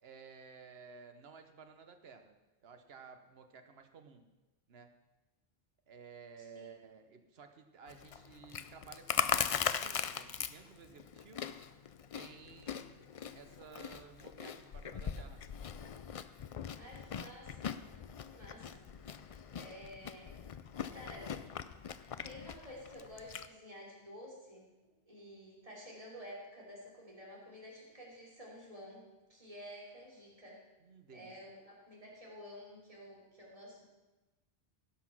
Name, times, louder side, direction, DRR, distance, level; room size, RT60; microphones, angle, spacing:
voice 1, 0.0-2.3 2.6-4.3 4.7-5.0 5.9-11.7 12.1-15.5 30.8-31.4, right 5 dB, 75° right, 7 dB, 1.2 m, -55 dB
voice 2, 6.4-6.7 16.7-17.8 18.3-18.9 19.5-20.4 20.9-21.3 22.2-24.7 25.1-29.0 29.3-30.6 31.1-33.9, equal, 35° right, -4 dB, 3.2 m, -51 dB
Chewing mastication, 7.9-23.5, left 7 dB, 50° left, 0.4 m, -40 dB
16.5 x 6.1 x 6.1 m, 1.1 s
omnidirectional pair, 1.0 m